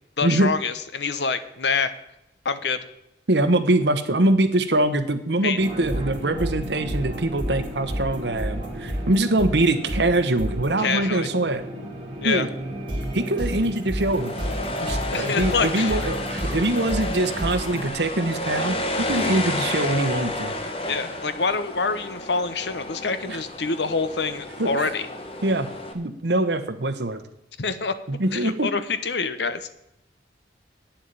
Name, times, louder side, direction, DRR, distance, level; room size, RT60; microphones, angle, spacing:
voice 1, 0.2-1.9 2.4-2.8 5.4-5.6 10.8-11.3 12.2-12.5 15.1-16.0 20.9-25.1 27.6-27.9 28.3-29.7, left 4 dB, 80° left, 12 dB, 1.0 m, -26 dB
voice 2, 3.3-11.6 12.2-12.5 13.1-14.3 14.8-20.5 23.3-23.4 24.6-24.9 25.4-25.7 25.9-27.2 28.1-28.7, right 1 dB, 80° right, 10 dB, 1.2 m, -23 dB
sound 1, 5.6-17.9, equal, 30° right, 2.7 m, -31 dB
sound 2, 14.0-25.9, left 2 dB, 30° left, 1.3 m, -31 dB
9.2 x 7.3 x 9.0 m, 0.84 s
head